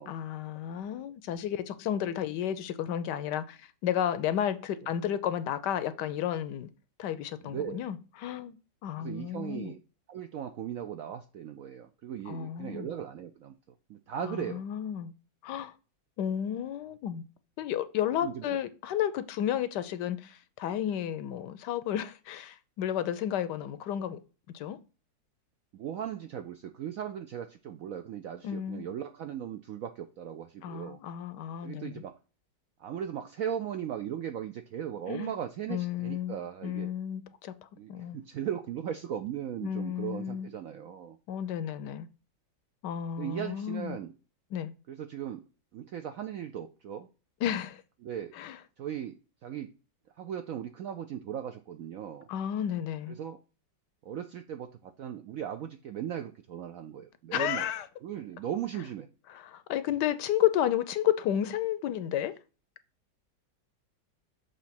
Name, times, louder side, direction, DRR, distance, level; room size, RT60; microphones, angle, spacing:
voice 1, 0.1-6.7 7.0-8.6 8.8-9.7 12.3-12.9 14.2-15.1 15.4-15.7 16.2-17.2 17.6-24.2 24.5-24.8 28.4-28.8 30.6-31.9 35.1-35.3 35.7-37.5 37.9-38.2 39.6-40.5 41.3-42.1 42.8-44.0 44.5-44.7 47.4-47.8 48.3-48.6 52.3-53.2 57.3-57.9 59.3-62.3, left 10 dB, 75° left, 1.1 m, -32 dB
voice 2, 7.4-7.8 9.0-9.8 10.1-13.5 13.9-14.6 18.2-18.6 25.7-31.0 31.6-32.2 32.8-36.9 37.8-41.2 43.2-44.1 44.9-45.4 45.7-47.1 48.0-48.3 48.8-49.7 50.2-52.3 53.1-53.4 54.0-57.6 58.0-59.1, right 9 dB, 75° right, 0.7 m, -38 dB
6.9 x 3.1 x 5.8 m
omnidirectional pair, 2.0 m